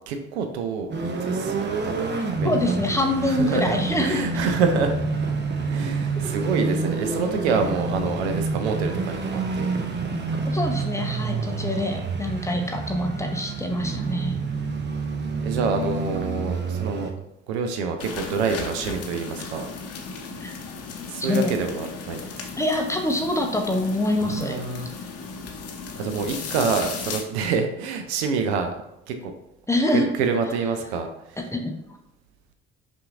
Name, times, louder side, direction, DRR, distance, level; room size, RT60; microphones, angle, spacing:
voice 1, 0.1-2.6 2.9-5.0 5.6-9.8 11.2-12.1 14.1-14.3 15.4-17.1 17.5-19.7 21.0-22.5 24.2-24.9 25.9-28.8 29.1-29.3 29.9-31.5, right 5 dB, 75° right, 6 dB, 0.5 m, -27 dB
sound 1, 0.9-17.1, right 4 dB, 35° right, 0.7 m, -28 dB
voice 2, 2.4-4.2 10.5-14.4 20.4-20.5 21.3-21.5 22.5-24.6 29.7-30.1 31.5-31.7, left 1 dB, 10° left, 3 dB, 0.6 m, -25 dB
sound 2, 18.0-27.2, left 5 dB, 45° left, 0.7 m, -36 dB
5.5 x 2.6 x 2.4 m, 0.87 s
figure-of-eight pair, 45°, 33 cm